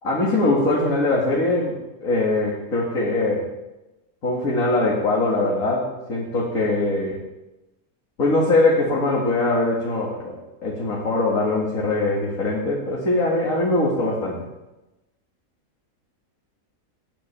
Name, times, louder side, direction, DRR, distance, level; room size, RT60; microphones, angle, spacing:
voice 1, 0.0-3.5 4.2-7.2 8.2-10.4 10.6-14.4, left 2 dB, 70° left, -5 dB, 2.5 m, -22 dB
17.5 x 10.0 x 3.4 m, 1.0 s
omnidirectional pair, 1.5 m